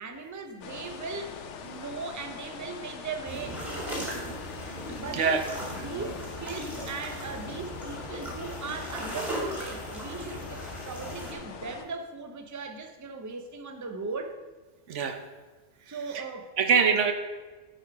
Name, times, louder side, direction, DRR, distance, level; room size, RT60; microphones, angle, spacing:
voice 1, 0.0-1.4 1.6-4.1 5.0-5.5 5.8-14.4 15.9-16.5, right 4 dB, 20° right, 5 dB, 0.6 m, -38 dB
sound 1, 0.6-11.9, left 6 dB, 85° left, 1.1 m, -43 dB
sound 2, 3.2-11.3, right 1 dB, ahead, 2.2 m, -37 dB
voice 2, 14.9-15.2 15.9-16.2 16.6-17.1, right 6 dB, 90° right, 7 dB, 1.2 m, -24 dB
10.5 x 4.9 x 4.8 m, 1.3 s
omnidirectional pair, 1.2 m